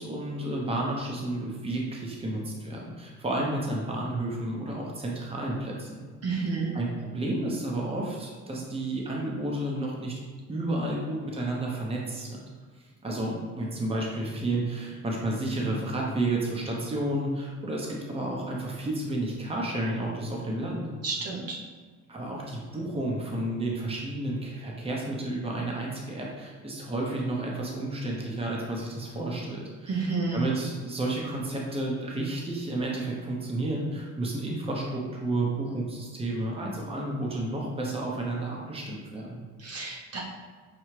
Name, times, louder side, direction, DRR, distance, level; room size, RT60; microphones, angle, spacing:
voice 1, 0.0-6.1 6.7-10.2 10.5-12.4 13.0-20.9 22.1-39.4, right 2 dB, 20° right, -2 dB, 0.8 m, -31 dB
voice 2, 6.2-6.7 21.0-21.6 29.9-30.4 39.6-40.2, right 4 dB, 55° right, -2 dB, 0.8 m, -30 dB
5.8 x 2.3 x 3.2 m, 1.5 s
cardioid pair, 90°, 30 cm